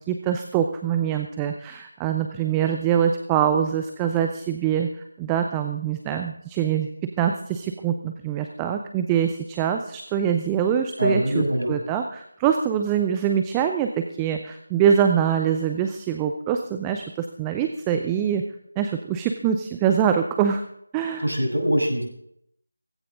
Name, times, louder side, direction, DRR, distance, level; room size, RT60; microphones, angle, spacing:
voice 1, 0.1-4.9 5.2-6.9 7.2-18.4 18.8-20.6 20.9-21.3, right 8 dB, 10° right, 6 dB, 0.6 m, -24 dB
voice 2, 11.0-11.8 21.2-22.0, equal, 70° right, 1 dB, 7.1 m, -23 dB
17.5 x 16.0 x 3.7 m, 0.73 s
figure-of-eight pair, 165°, 0 cm